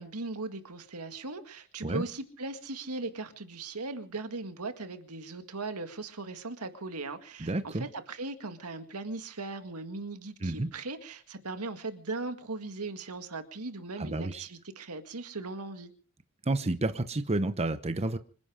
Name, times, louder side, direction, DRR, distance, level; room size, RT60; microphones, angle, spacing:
voice 1, 0.0-15.9, right 3 dB, 90° right, 8 dB, 1.9 m, -38 dB
voice 2, 7.4-7.8 10.4-10.7 14.0-14.5 16.5-18.2, right 2 dB, 30° right, 10 dB, 0.8 m, -30 dB
26.0 x 10.5 x 5.0 m, 0.42 s
head